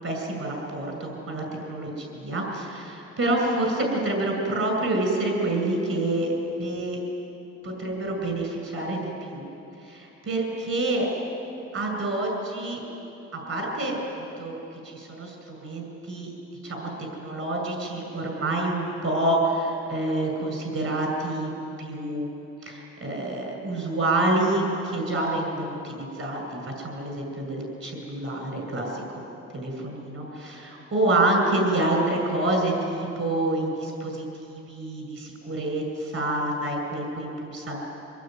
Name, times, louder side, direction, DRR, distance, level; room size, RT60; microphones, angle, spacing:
voice 1, 0.0-7.0 7.6-9.5 9.8-11.1 11.7-12.8 13.5-14.6 14.8-16.3 16.6-21.5 21.8-22.3 22.6-29.2 29.5-37.8, right 2 dB, 50° right, 1 dB, 7.7 m, -27 dB
25.0 x 20.0 x 9.5 m, 2.8 s
cardioid pair, 90°, 30 cm